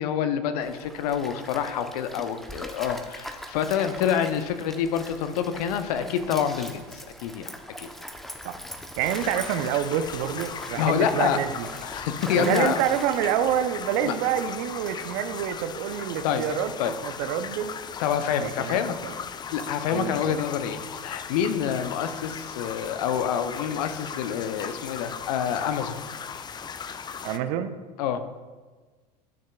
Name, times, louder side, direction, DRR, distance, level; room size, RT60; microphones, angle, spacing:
voice 1, 0.0-7.5 7.8-7.9 10.8-11.4 11.8-12.8 14.0-14.1 16.2-16.4 16.8-16.9 18.0-19.0 19.5-26.0 28.0-28.2, left 8 dB, 65° left, 10 dB, 0.7 m, -27 dB
Stream, 0.6-13.7, equal, ahead, 0.7 m, -41 dB
sound 1, 9.0-27.4, left 6 dB, 20° left, 0.4 m, -38 dB
voice 2, 9.0-11.7 12.4-16.7 17.0-17.8 18.4-19.1 19.9-20.4 27.2-27.7, right 10 dB, 60° right, 11 dB, 0.6 m, -27 dB
11.5 x 6.4 x 2.3 m, 1.4 s
hypercardioid pair, 80°, 21 cm